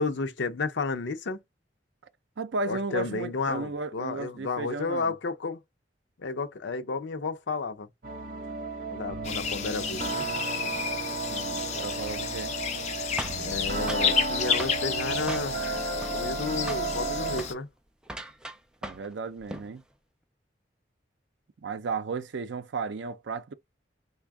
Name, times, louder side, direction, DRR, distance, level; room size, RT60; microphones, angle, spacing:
voice 1, 0.0-1.4 2.7-5.6 6.2-7.9 8.9-10.2 13.4-17.7, left 4 dB, 85° left, 0.6 m, -32 dB
voice 2, 2.4-5.2 11.3-12.6 18.8-19.8 21.6-23.5, right 4 dB, 80° right, 0.5 m, -34 dB
sound 1, 8.0-17.5, right 3 dB, 50° right, 1.1 m, -33 dB
sound 2, 9.2-17.5, left 7 dB, 40° left, 0.6 m, -32 dB
sound 3, 13.2-14.1 14.6-14.8 15.3-15.7 16.0-16.4 16.7-16.9 17.3-17.6 18.0-19.1 19.4-19.7, right 1 dB, 5° right, 0.4 m, -38 dB
3.4 x 2.2 x 3.5 m
head